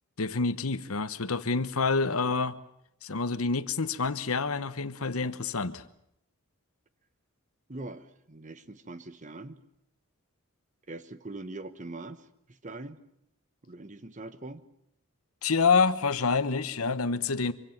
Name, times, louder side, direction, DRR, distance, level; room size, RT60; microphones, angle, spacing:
voice 1, 0.2-2.6 3.0-5.8 15.4-17.5, left 4 dB, 80° left, 1.1 m, -27 dB
voice 2, 7.7-9.6 10.9-13.0 13.6-14.6, right 2 dB, 35° right, 1.2 m, -42 dB
25.0 x 24.0 x 7.3 m
head